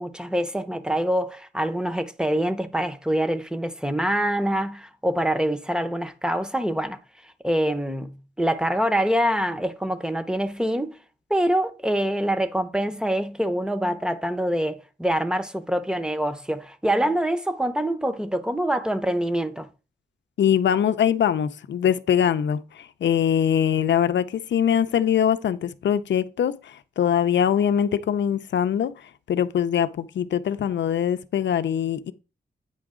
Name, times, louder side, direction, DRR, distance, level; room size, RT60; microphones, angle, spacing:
voice 1, 0.0-7.0 7.4-10.9 11.3-19.7, right 1 dB, 5° right, 0.7 m, -25 dB
voice 2, 20.4-28.9 29.3-32.1, left 9 dB, 90° left, 0.5 m, -22 dB
8.9 x 4.9 x 3.7 m
wide cardioid pair, 90°, 18 cm